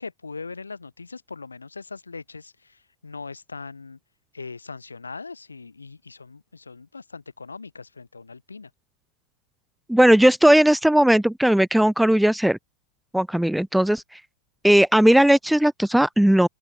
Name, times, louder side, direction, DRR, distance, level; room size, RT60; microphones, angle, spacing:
voice 1, 0.0-4.0 4.3-8.7, left 4 dB, 80° left, 7.6 m, -40 dB
voice 2, 9.9-12.6 13.1-14.2 14.6-16.5, right 1 dB, ahead, 0.8 m, -17 dB
open air
figure-of-eight pair, 90°, 0 cm